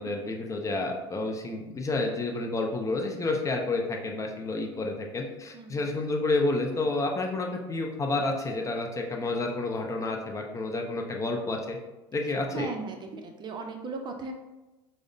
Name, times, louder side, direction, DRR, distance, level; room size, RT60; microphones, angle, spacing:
voice 1, 0.0-11.8 12.1-12.7, left 2 dB, 25° left, 2 dB, 0.5 m, -30 dB
voice 2, 12.5-14.3, right 4 dB, 35° right, 4 dB, 0.5 m, -37 dB
4.8 x 2.1 x 2.6 m, 1.1 s
hypercardioid pair, 85°, 13 cm